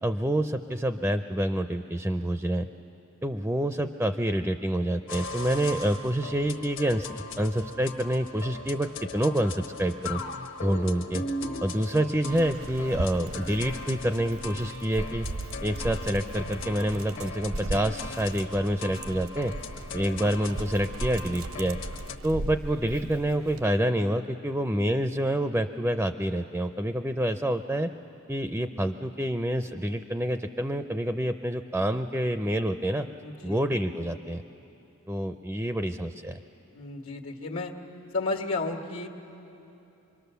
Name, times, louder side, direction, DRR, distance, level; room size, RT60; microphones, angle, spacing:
voice 1, 0.0-2.7 3.2-10.2 10.6-11.2 11.6-15.3 15.6-19.5 19.9-21.8 22.2-27.9 28.3-33.1 33.4-34.4 35.1-36.4, right 1 dB, 10° right, 9 dB, 0.4 m, -27 dB
sound 1, 5.1-22.2, left 2 dB, 60° left, 1.2 m, -39 dB
Dog, 12.3-23.6, right 2 dB, 75° right, 0.8 m, -38 dB
voice 2, 33.2-33.6 36.7-37.7 38.1-39.1, left 3 dB, 80° left, 2 dB, 1.7 m, -32 dB
25.0 x 23.5 x 6.9 m, 2.9 s
head